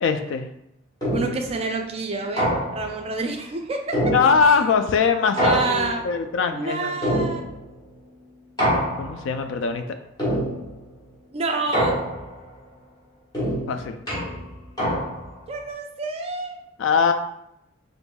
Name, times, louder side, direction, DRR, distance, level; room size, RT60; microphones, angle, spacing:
voice 1, 0.0-0.5 4.1-6.9 9.0-9.8 13.7-14.0 16.8-17.1, left 5 dB, 70° left, 8 dB, 0.3 m, -21 dB
sound 1, 1.0-1.5 2.4-3.0 3.9-4.7 5.4-6.2 7.0-7.7 8.6-9.3 10.2-10.8 11.7-12.4 13.3-15.4, equal, 20° left, 1.1 m, -25 dB
voice 2, 1.1-4.1 4.5-4.6 5.4-6.0 6.5-7.4 11.3-12.0 15.5-16.6, right 3 dB, 30° right, 3 dB, 0.3 m, -28 dB
4.5 x 2.6 x 2.2 m, 0.81 s
head